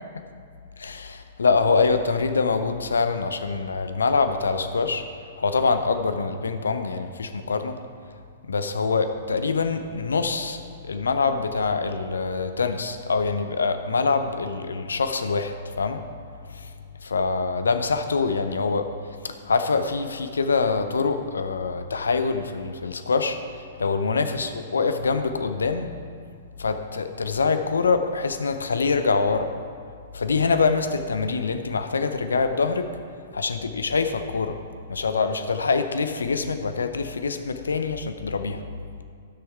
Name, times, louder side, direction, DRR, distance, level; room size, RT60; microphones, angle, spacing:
voice 1, 0.8-5.0 5.4-7.7 8.5-16.0 17.0-18.9 19.5-23.4 23.8-25.9 26.6-29.5 30.1-32.9 33.3-34.6 34.9-38.6, left 4 dB, 75° left, 8 dB, 0.6 m, -24 dB
13.0 x 6.3 x 4.6 m, 2.2 s
figure-of-eight pair, 110°, 0 cm